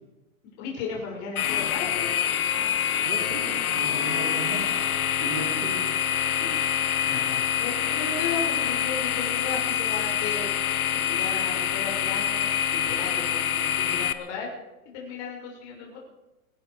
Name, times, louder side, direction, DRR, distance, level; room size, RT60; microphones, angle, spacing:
voice 1, 0.6-2.1 6.4-14.5 14.8-16.0, left 5 dB, 40° left, -1 dB, 6.0 m, -35 dB
sound 1, 1.4-14.1, left 9 dB, 80° left, 1.1 m, -26 dB
voice 2, 3.0-4.7 5.2-5.8, right 4 dB, 75° right, -4 dB, 6.1 m, -36 dB
25.0 x 11.0 x 5.0 m, 1.0 s
hypercardioid pair, 140°, 42 cm